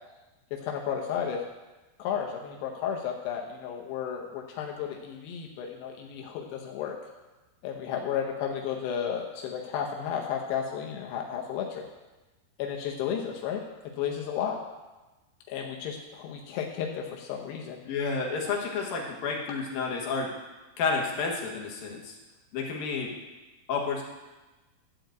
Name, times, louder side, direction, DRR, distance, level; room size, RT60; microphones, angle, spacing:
voice 1, 0.6-1.4 2.0-7.0 7.6-11.8 12.6-13.6 14.0-14.6 15.5-17.8, left 8 dB, 90° left, 0 dB, 3.0 m, -33 dB
voice 2, 17.9-20.3 20.8-22.2 22.5-23.1 23.7-24.0, left 4 dB, 70° left, 0 dB, 2.9 m, -30 dB
12.0 x 4.7 x 7.7 m, 1.1 s
omnidirectional pair, 4.7 m